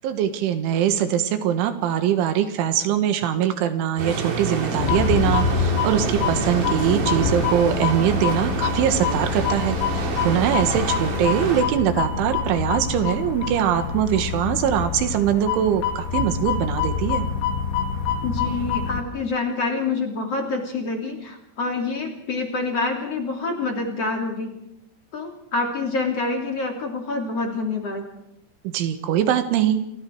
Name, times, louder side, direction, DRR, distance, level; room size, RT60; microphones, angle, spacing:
voice 1, 0.0-17.3 28.6-29.8, right 10 dB, 90° right, 9 dB, 4.0 m, -22 dB
sound 1, 4.0-11.6, right 4 dB, 65° right, 5.8 m, -28 dB
sound 2, 4.8-19.0, left 6 dB, 80° left, 4.5 m, -26 dB
voice 2, 18.2-24.5 25.1-28.0, left 3 dB, 35° left, 2 dB, 3.5 m, -27 dB
28.5 x 23.5 x 4.8 m, 0.84 s
omnidirectional pair, 5.3 m